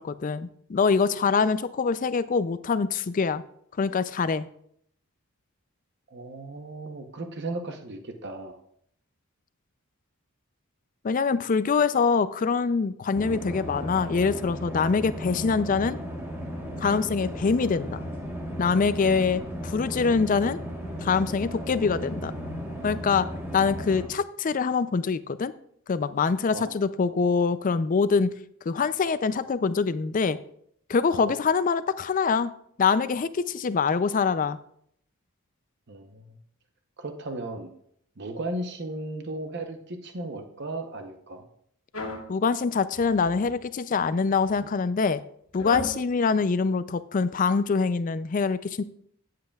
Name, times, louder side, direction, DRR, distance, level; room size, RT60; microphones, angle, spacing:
voice 1, 0.0-3.4 3.8-4.5 11.0-16.0 16.8-18.0 18.6-20.6 21.0-22.3 22.8-23.3 23.5-25.5 25.9-28.3 28.7-30.4 30.9-32.5 32.8-34.6 42.3-45.2 45.5-48.8, left 5 dB, 35° left, 14 dB, 0.3 m, -24 dB
voice 2, 6.1-8.6 26.5-26.8 31.2-31.4 35.9-36.4 37.0-37.7 38.2-41.4, right 2 dB, 50° right, 6 dB, 0.8 m, -36 dB
sound 1, 13.1-24.1, equal, 10° right, 1.3 m, -35 dB
sound 2, 41.9-42.3 42.9-43.6 44.3-44.6 45.5-46.0, left 1 dB, 75° left, 1.5 m, -35 dB
15.5 x 7.6 x 2.3 m, 0.68 s
head